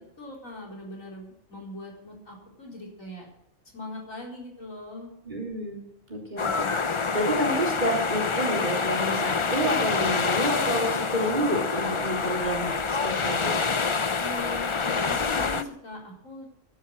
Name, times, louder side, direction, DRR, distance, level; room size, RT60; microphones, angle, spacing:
voice 1, 0.2-3.3 3.7-5.1 14.2-16.5, left 1 dB, 80° left, -2 dB, 5.0 m, -40 dB
voice 2, 5.3-13.7, equal, 35° right, 0 dB, 4.0 m, -29 dB
sound 1, 6.4-15.6, left 4 dB, 35° left, 0.5 m, -27 dB
12.0 x 10.5 x 7.9 m, 0.74 s
omnidirectional pair, 1.4 m